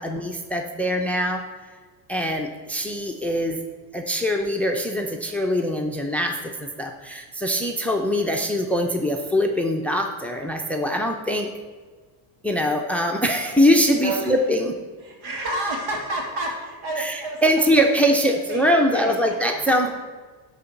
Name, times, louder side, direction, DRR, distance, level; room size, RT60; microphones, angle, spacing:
voice 1, 0.0-1.4 2.1-3.6 3.9-11.5 12.4-14.7 17.0-19.9, equal, 5° left, 3 dB, 0.7 m, -22 dB
voice 2, 15.0-18.0 18.5-19.3 19.7-19.9, right 2 dB, 65° right, 0 dB, 3.0 m, -30 dB
11.5 x 4.1 x 7.1 m, 1.4 s
cardioid pair, 115°, 44 cm